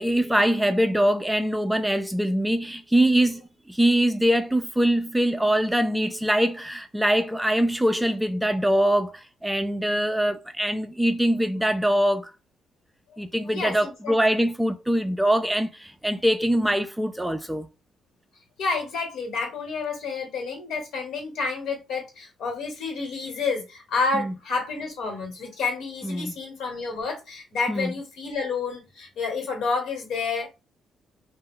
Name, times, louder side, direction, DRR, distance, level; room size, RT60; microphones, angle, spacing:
voice 1, 0.0-3.4 3.7-12.3 13.2-17.7 24.1-24.3 26.0-26.3 27.7-27.9, right 1 dB, 5° right, 0.3 m, -23 dB
voice 2, 13.5-14.2 18.6-30.5, left 4 dB, 75° left, 1.1 m, -29 dB
2.3 x 2.1 x 3.6 m
cardioid pair, 90°, 0 cm